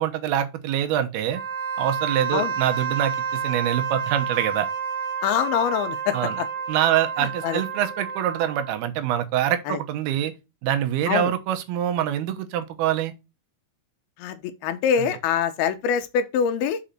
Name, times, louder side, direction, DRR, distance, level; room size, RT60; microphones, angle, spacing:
voice 1, 0.0-1.4 1.8-4.7 6.1-6.4 6.7-10.3 10.6-13.1 15.0-15.2, right 11 dB, 85° right, 2.9 m, -25 dB
Wind instrument woodwind instrument, 1.3-8.8, right 6 dB, 55° right, 2.6 m, -30 dB
voice 2, 5.2-6.5 7.2-7.6 9.7-9.8 11.1-11.3 14.2-16.8, left 8 dB, 85° left, 2.7 m, -24 dB
6.1 x 5.2 x 4.2 m
omnidirectional pair, 4.4 m